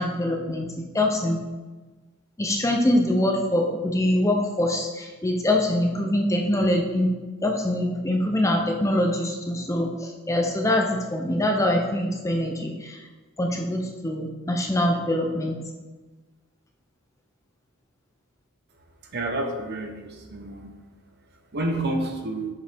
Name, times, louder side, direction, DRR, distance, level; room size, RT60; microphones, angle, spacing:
voice 1, 0.0-1.4 2.4-7.1 7.4-13.0 13.4-15.6, left 1 dB, 15° left, 2 dB, 0.5 m, -24 dB
voice 2, 19.1-20.7 21.5-22.5, right 1 dB, 45° right, 3 dB, 0.9 m, -29 dB
7.4 x 5.2 x 3.4 m, 1.3 s
head